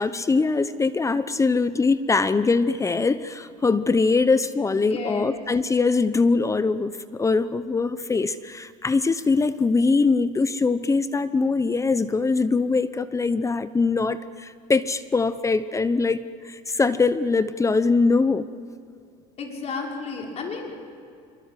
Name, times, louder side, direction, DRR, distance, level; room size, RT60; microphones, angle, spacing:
voice 1, 0.0-18.5, left 4 dB, 20° left, 14 dB, 0.9 m, -22 dB
voice 2, 4.7-5.4 19.4-20.8, left 4 dB, 40° left, 0 dB, 5.6 m, -33 dB
26.5 x 23.0 x 7.6 m, 2.4 s
supercardioid pair, 100°, 16 cm